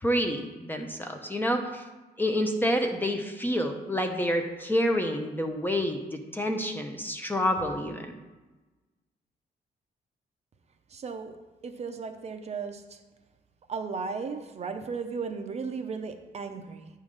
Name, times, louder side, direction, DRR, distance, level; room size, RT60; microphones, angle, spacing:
voice 1, 0.0-1.8 2.2-8.1, equal, 10° left, 4 dB, 0.5 m, -28 dB
voice 2, 10.9-11.4 11.6-13.0 13.7-16.9, right 5 dB, 40° right, 6 dB, 0.6 m, -35 dB
9.6 x 3.7 x 6.3 m, 1.2 s
wide cardioid pair, 180°, 17 cm